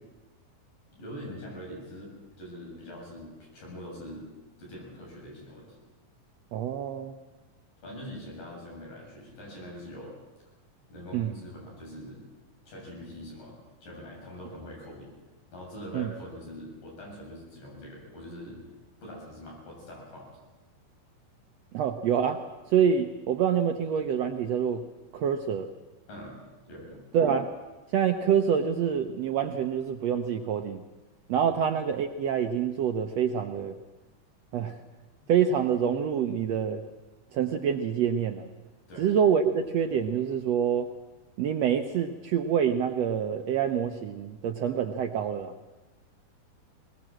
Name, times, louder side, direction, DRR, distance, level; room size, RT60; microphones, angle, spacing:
voice 1, 0.9-4.3 4.6-5.8 7.8-10.2 10.9-12.2 12.7-15.1 15.5-18.6 19.0-20.3 26.1-27.0 31.5-31.6 38.9-39.1, left 1 dB, 70° left, -2 dB, 9.1 m, -43 dB
voice 2, 6.5-7.1 11.1-11.3 15.9-16.1 21.7-24.8 25.1-25.7 27.1-27.5 27.9-30.8 31.3-33.7 34.5-34.8 35.3-36.8 37.3-38.5 39.0-40.9 41.4-45.5, right 8 dB, 75° right, 6 dB, 1.5 m, -26 dB
21.0 x 20.0 x 7.6 m, 1.1 s
omnidirectional pair, 4.0 m